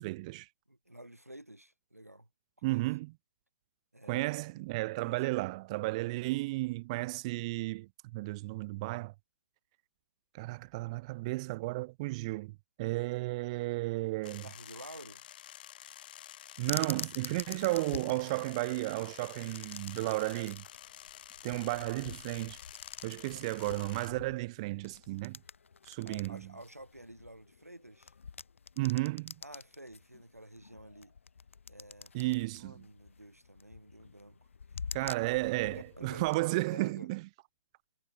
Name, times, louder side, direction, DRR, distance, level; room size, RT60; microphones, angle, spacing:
voice 1, 0.0-0.5 2.6-3.1 4.1-9.1 10.3-14.5 16.6-20.6 21.4-22.6 23.0-25.4 25.9-26.4 28.8-29.3 32.1-32.8 34.9-37.2, right 21 dB, 25° right, 0.3 m, -33 dB
voice 2, 0.7-2.3 2.6-2.8 3.9-4.3 4.6-4.7 5.0-5.2 14.4-15.3 21.7-21.8 23.3-23.4 26.0-28.1 29.4-31.1 31.7-34.5 35.0-35.1 36.0-36.4 36.7-37.1, right 1 dB, 90° right, 0.9 m, -51 dB
sound 1, 14.2-24.1, left 12 dB, 40° left, 0.6 m, -50 dB
sound 2, 16.6-36.4, left 5 dB, 60° left, 1.8 m, -47 dB
figure-of-eight pair, 125°, 8 cm